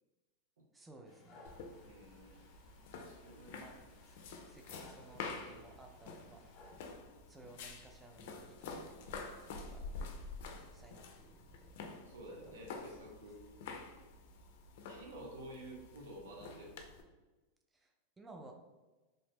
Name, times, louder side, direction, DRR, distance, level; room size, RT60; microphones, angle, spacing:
voice 1, 0.7-1.5 3.6-6.4 7.3-9.8 10.7-11.8 12.5-12.6 12.9-13.0 17.7-18.5, right 2 dB, 10° right, 2 dB, 0.3 m, -58 dB
Dog, 1.0-6.7, left 2 dB, 35° left, 0.9 m, -62 dB
sound 1, 1.4-17.0, left 4 dB, 65° left, 0.4 m, -49 dB
voice 2, 1.8-3.6 12.1-13.4 14.9-16.8, right 1 dB, 90° right, -1 dB, 0.8 m, -51 dB
2.7 x 2.0 x 3.4 m, 1.2 s
supercardioid pair, 125°, 0 cm